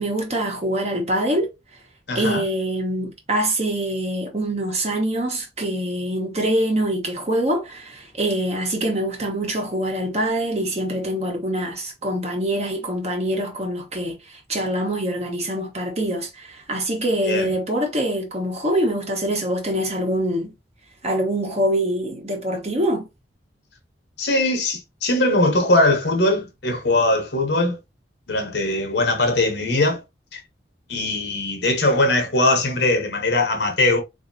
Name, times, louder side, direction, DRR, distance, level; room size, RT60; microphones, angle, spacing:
voice 1, 0.0-1.5 2.1-20.5 21.0-23.0, right 1 dB, 35° right, 1.1 m, -24 dB
voice 2, 2.1-2.4 17.2-17.5 24.2-27.8 28.3-30.0 30.3-30.4 30.9-34.0, left 2 dB, 65° left, 1.1 m, -20 dB
3.9 x 2.8 x 2.7 m
head